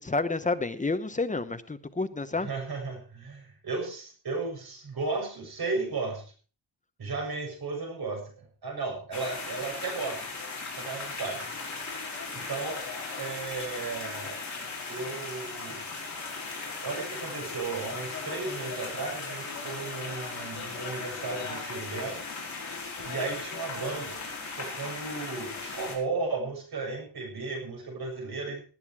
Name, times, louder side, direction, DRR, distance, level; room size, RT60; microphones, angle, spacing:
voice 1, 0.0-2.5, left 3 dB, 15° left, 10 dB, 0.9 m, -29 dB
voice 2, 2.4-6.3 7.0-10.2 10.7-11.5 12.3-12.8 13.2-14.4 14.9-15.8 16.8-22.2 23.0-24.2 24.6-28.6, right 3 dB, 55° right, 2 dB, 7.1 m, -35 dB
sound 1, 9.1-26.0, left 4 dB, 35° left, 5.4 m, -37 dB
19.0 x 9.5 x 4.8 m, 0.38 s
wide cardioid pair, 175°, 45 cm